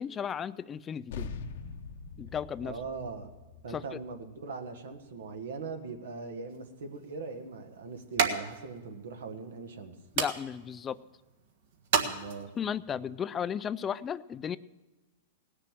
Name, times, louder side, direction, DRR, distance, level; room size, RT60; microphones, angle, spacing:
voice 1, 0.0-1.3 2.2-2.8 3.7-3.8 10.2-11.0 12.6-14.6, left 8 dB, 20° left, 16 dB, 0.4 m, -34 dB
sound 1, 1.1-5.9, left 4 dB, 70° left, 0.9 m, -44 dB
voice 2, 2.6-3.3 3.6-9.9 12.0-12.5, right 4 dB, 85° right, 6 dB, 1.7 m, -40 dB
sound 2, 6.5-12.8, right 7 dB, 70° right, 1.5 m, -35 dB
18.0 x 6.8 x 7.4 m, 1.1 s
hypercardioid pair, 135°, 0 cm